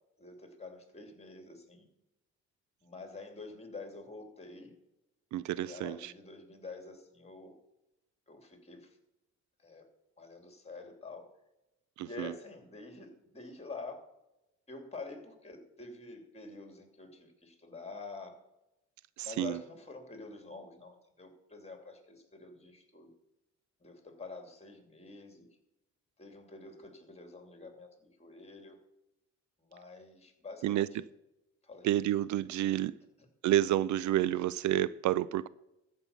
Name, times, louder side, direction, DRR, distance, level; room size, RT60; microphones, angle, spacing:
voice 1, 0.2-1.9 2.8-4.7 5.5-7.5 8.3-9.0 9.6-9.9 10.2-11.3 12.0-14.0 14.7-18.4 19.2-23.1 23.8-25.5 26.2-28.8 29.6-30.9 31.6-31.9, left 3 dB, 20° left, 2.8 m, -47 dB
voice 2, 5.3-6.1 12.0-12.3 19.2-19.6 30.6-30.9 31.8-32.9 33.4-35.5, right 13 dB, 70° right, 0.5 m, -29 dB
14.0 x 5.4 x 7.2 m
cardioid pair, 90°, 30 cm